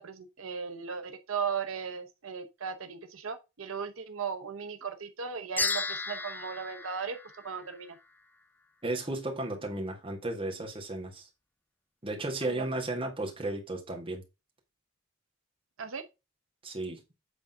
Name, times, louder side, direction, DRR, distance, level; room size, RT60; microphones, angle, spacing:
voice 1, 0.0-7.2 7.4-8.0 12.5-12.6 15.8-16.0, right 6 dB, 80° right, 0.8 m, -37 dB
sound 1, 5.6-8.0, left 3 dB, 10° left, 0.5 m, -34 dB
voice 2, 8.8-11.3 12.0-14.2 16.6-17.0, right 2 dB, 25° right, 1.8 m, -34 dB
8.3 x 3.7 x 5.4 m
head